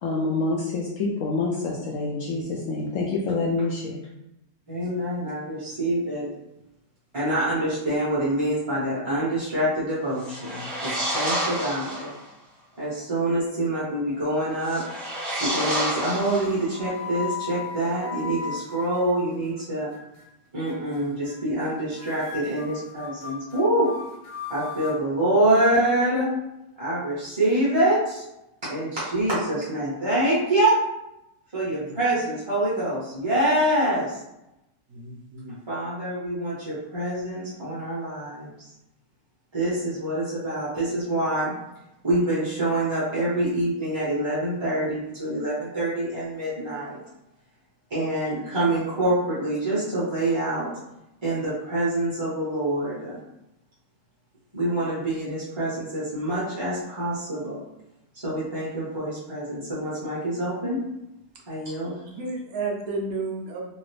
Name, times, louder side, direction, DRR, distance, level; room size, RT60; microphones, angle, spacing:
voice 1, 0.0-4.0, left 3 dB, 85° left, -3 dB, 0.6 m, -27 dB
voice 2, 4.7-6.3 7.1-12.1 12.8-14.8 15.4-19.9 20.5-23.9 24.5-26.3 26.8-28.2 28.6-30.8 31.5-34.2 35.7-38.5 39.5-41.5 42.0-47.0 47.9-50.7 51.2-53.2 54.5-57.6 58.1-60.8 61.5-61.9, right 1 dB, 25° right, -9 dB, 0.5 m, -26 dB
sound 1, 10.1-12.2 14.6-16.9, equal, ahead, 0.9 m, -29 dB
sound 2, 14.1-14.7 15.0-15.5 16.3-19.6 19.9-20.3 20.7-21.0 21.2-21.3 21.6-21.7 22.0-25.0, left 6 dB, 60° left, 1.0 m, -37 dB
voice 3, 34.9-35.6 62.0-63.7, right 3 dB, 65° right, 0 dB, 0.9 m, -32 dB
2.9 x 2.7 x 3.2 m, 0.89 s
omnidirectional pair, 1.9 m